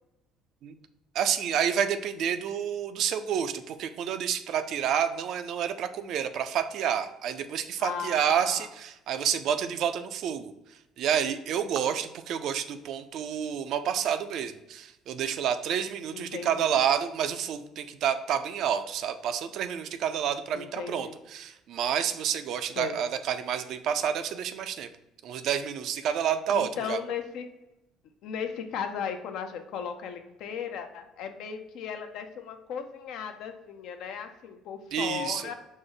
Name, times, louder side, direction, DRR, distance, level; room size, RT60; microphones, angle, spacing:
voice 1, 1.1-24.9 25.2-27.0 34.9-35.5, right 8 dB, 65° right, 10 dB, 0.3 m, -29 dB
voice 2, 7.8-8.7 16.1-16.8 20.5-21.2 22.8-23.0 26.5-27.4 28.2-35.5, left 7 dB, 70° left, 7 dB, 0.5 m, -36 dB
5.0 x 2.0 x 3.8 m, 0.93 s
cardioid pair, 105°, 0 cm